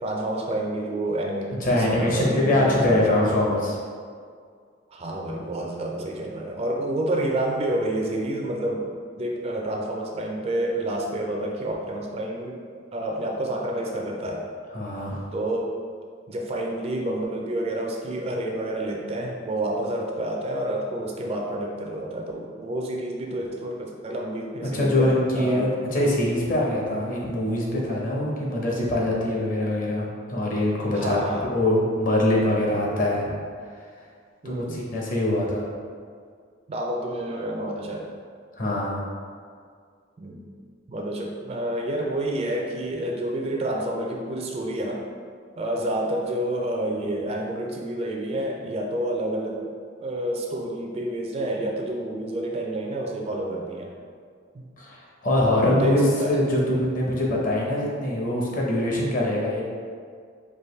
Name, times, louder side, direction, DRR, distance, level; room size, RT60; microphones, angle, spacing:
voice 1, 0.0-3.1 4.9-8.9 9.2-12.6 12.9-14.5 15.3-15.7 16.3-25.7 30.9-31.5 34.4-34.8 36.7-38.1 40.2-40.4 40.9-45.0 45.6-49.7 50.0-53.9 54.5-54.6 55.7-56.4, right 1 dB, 30° right, 0 dB, 0.3 m, -29 dB
voice 2, 1.5-3.8 14.7-15.3 24.6-33.3 34.4-35.7 38.6-39.0 54.8-59.6, left 1 dB, 45° left, -3 dB, 0.7 m, -23 dB
4.7 x 2.6 x 3.1 m, 2.1 s
head